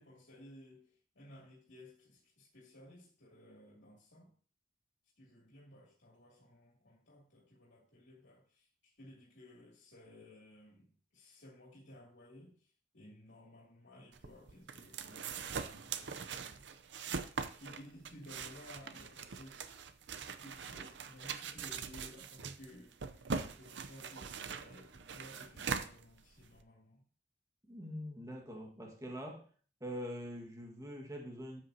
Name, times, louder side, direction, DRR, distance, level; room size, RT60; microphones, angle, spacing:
voice 1, 0.0-4.3 5.2-16.7 17.6-19.6 20.4-23.3 23.6-27.0, left 1 dB, 80° left, 2.8 m, -57 dB
sound 1, 14.1-26.6, right 5 dB, 80° right, 0.7 m, -42 dB
voice 2, 27.7-29.5 29.8-31.6, equal, 20° right, 1.7 m, -44 dB
12.5 x 8.1 x 2.8 m
head